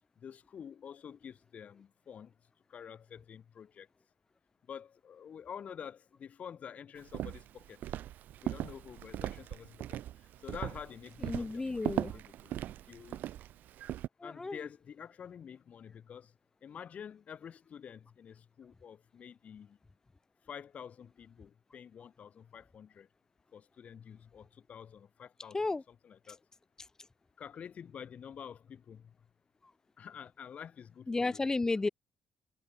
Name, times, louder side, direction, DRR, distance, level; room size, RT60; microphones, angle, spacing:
voice 1, 0.2-2.3 2.7-3.9 4.7-7.8 8.4-12.6 12.9-13.4 14.2-16.3 16.6-19.8 20.4-23.1 23.5-25.6 25.9-26.4 27.4-29.3 30.0-31.4, left 8 dB, 50° left, 3.0 m, -48 dB
Walk footsteps, 7.0-14.1, right 12 dB, 80° right, 0.8 m, -39 dB
voice 2, 11.2-12.2 14.2-14.6 25.5-25.8 26.8-26.9 31.1-31.9, left 3 dB, 20° left, 1.4 m, -33 dB
cardioid pair, 110°, 3 cm